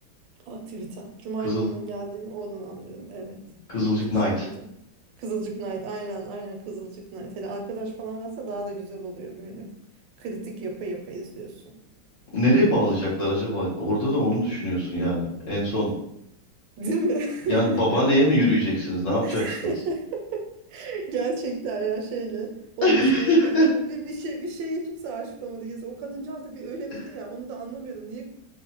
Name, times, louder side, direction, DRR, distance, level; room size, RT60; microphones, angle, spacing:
voice 1, 0.5-3.4 3.8-4.7 5.2-9.7 10.2-11.8 16.8-18.0 19.2-20.4 20.7-28.2, right 3 dB, 80° right, 2 dB, 1.2 m, -33 dB
voice 2, 3.7-4.5 12.3-15.9 17.5-19.4 22.8-23.6, equal, 60° left, -7 dB, 0.3 m, -22 dB
3.1 x 2.0 x 2.8 m, 0.77 s
omnidirectional pair, 2.1 m